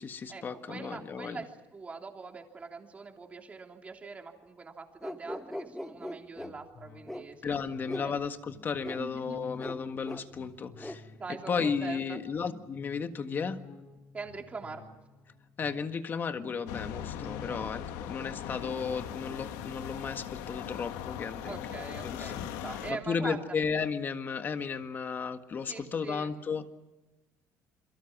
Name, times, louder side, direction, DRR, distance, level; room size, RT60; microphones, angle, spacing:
voice 1, 0.0-1.4 7.4-11.0 11.5-13.6 15.6-21.5 22.0-22.5 22.9-26.7, left 5 dB, 35° left, 8 dB, 1.6 m, -34 dB
voice 2, 0.7-7.6 8.0-8.1 9.0-9.7 10.7-10.9 11.1-12.2 14.1-14.8 17.4-17.6 21.4-23.4 25.7-26.3, right 4 dB, 25° right, 3 dB, 3.2 m, -43 dB
sound 1, 5.0-6.5 7.1-7.2 7.9-8.1 8.8-9.0 9.6-9.8 10.0-10.2 10.8-11.0, left 1 dB, 5° left, 1.0 m, -39 dB
sound 2, 6.4-22.1 22.5-22.6, left 5 dB, 50° left, 7.0 m, -52 dB
sound 3, 16.7-22.9, left 10 dB, 90° left, 1.5 m, -39 dB
28.5 x 23.5 x 6.1 m, 1.1 s
cardioid pair, 125°, 6 cm